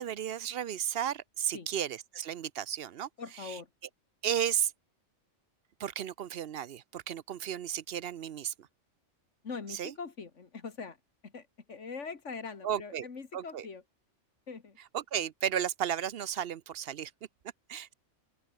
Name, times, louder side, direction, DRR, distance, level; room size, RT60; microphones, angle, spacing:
voice 1, 0.0-3.1 3.4-3.6 4.2-4.7 5.8-8.7 9.7-9.9 12.6-13.1 13.3-13.7 14.9-17.1 17.7-17.9, right 9 dB, 60° right, 0.8 m, -34 dB
voice 2, 3.2-3.7 9.4-11.0 11.2-13.8 14.5-14.8, left 5 dB, 75° left, 2.3 m, -42 dB
open air
omnidirectional pair, 1.3 m